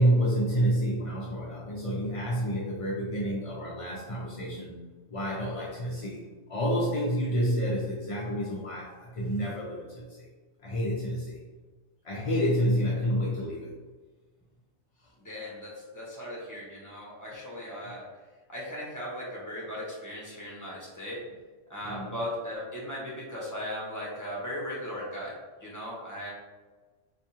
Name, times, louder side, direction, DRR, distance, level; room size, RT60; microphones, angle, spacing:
voice 1, 0.0-4.8 5.1-6.2 6.5-10.3 10.6-11.4 12.0-13.7 15.0-15.1 21.8-22.1, equal, 50° left, -5 dB, 0.4 m, -29 dB
voice 2, 15.2-18.1 18.5-21.3 21.7-26.3, left 1 dB, 15° left, -5 dB, 0.9 m, -37 dB
3.5 x 3.0 x 2.8 m, 1.3 s
omnidirectional pair, 1.3 m